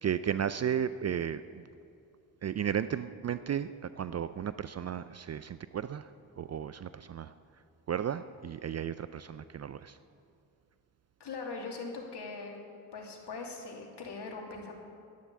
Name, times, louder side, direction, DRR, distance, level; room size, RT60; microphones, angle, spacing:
voice 1, 0.0-1.6 2.4-6.1 6.4-7.3 7.9-10.0, right 8 dB, 35° right, 14 dB, 0.5 m, -34 dB
voice 2, 11.2-12.6 12.9-14.7, left 4 dB, 55° left, 1 dB, 2.8 m, -41 dB
10.5 x 10.5 x 8.5 m, 2.4 s
hypercardioid pair, 45°, 48 cm